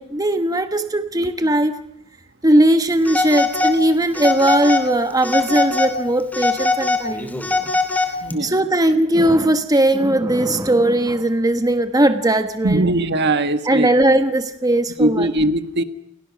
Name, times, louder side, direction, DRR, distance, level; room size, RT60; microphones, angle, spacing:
voice 1, 0.0-1.8 2.4-7.5 8.0-8.1 8.4-12.8 13.7-15.3, right 1 dB, 15° right, 8 dB, 1.2 m, -18 dB
Telephone, 3.1-3.8 4.2-4.9 5.2-6.0 6.3-8.4, left 3 dB, 10° left, 2.7 m, -21 dB
voice 2, 8.2-8.6 12.6-13.9 15.0-15.8, right 1 dB, 50° right, 10 dB, 1.6 m, -20 dB
29.5 x 29.0 x 6.4 m, 0.72 s
head